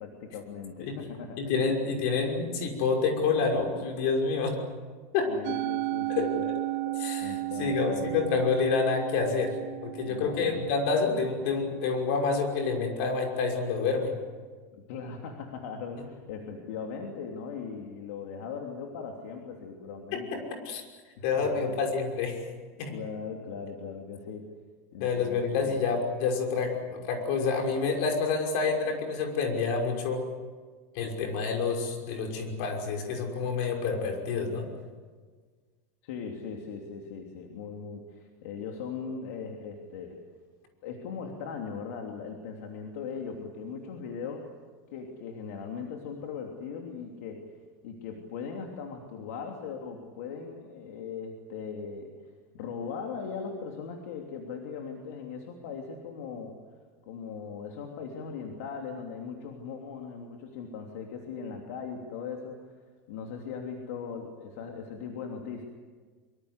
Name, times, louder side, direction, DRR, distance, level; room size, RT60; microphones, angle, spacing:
voice 1, 0.0-1.4 5.3-6.5 7.2-8.4 10.0-10.6 14.7-20.4 21.2-21.8 22.9-24.5 24.9-25.8 36.0-40.2 40.8-44.5 44.9-47.5 47.8-56.6 57.1-62.8 63.1-65.6, left 5 dB, 65° left, 2 dB, 3.1 m, -39 dB
voice 2, 1.4-4.5 5.1-5.3 6.1-6.3 7.0-9.5 9.8-14.1 20.1-20.4 20.6-20.8 21.2-22.4 22.8-22.9 25.0-30.2 30.9-34.7, left 4 dB, 50° left, 3 dB, 5.8 m, -28 dB
Musical instrument, 5.4-11.8, right 17 dB, 55° right, 0.9 m, -34 dB
24.5 x 24.5 x 8.2 m, 1.5 s
supercardioid pair, 170°, 8 cm